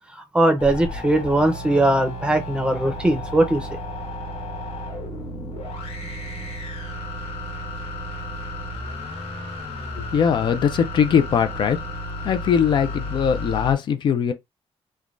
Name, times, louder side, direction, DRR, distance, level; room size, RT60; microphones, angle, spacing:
voice 1, 0.1-3.7, right 1 dB, 10° right, 0.6 m, -20 dB
sound 1, 0.6-13.7, left 1 dB, 70° left, 1.1 m, -33 dB
voice 2, 10.0-11.8 12.2-14.3, left 7 dB, 45° left, 0.4 m, -21 dB
3.2 x 2.2 x 2.5 m
cardioid pair, 170°, 11 cm